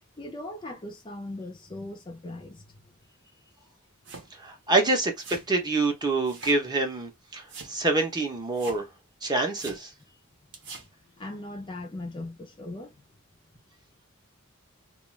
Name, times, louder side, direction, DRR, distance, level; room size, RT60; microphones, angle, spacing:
voice 1, 0.2-2.8 11.2-13.0, left 1 dB, 20° left, 0.4 m, -39 dB
sound 1, 4.1-4.3 5.2-5.5 6.3-6.7 6.9-7.0 7.5-7.8 8.5-8.8 9.6-9.8 10.5-10.9, right 4 dB, 60° right, 0.8 m, -43 dB
voice 2, 4.4-8.8 9.2-9.9, right 2 dB, 20° right, 0.7 m, -26 dB
2.3 x 2.3 x 3.0 m
head